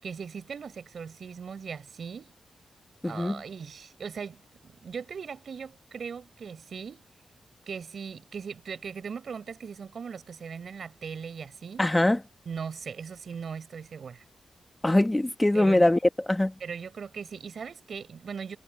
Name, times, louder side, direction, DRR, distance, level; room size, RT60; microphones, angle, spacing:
voice 1, 0.0-2.3 3.0-4.4 4.6-7.1 7.7-11.9 12.4-14.2 15.5-15.9 16.6-18.6, right 6 dB, 65° right, 6.6 m, -39 dB
voice 2, 3.0-3.4 11.8-12.2 14.8-16.0 16.3-16.5, left 1 dB, 10° left, 1.7 m, -22 dB
wide cardioid pair, 145°, 0 cm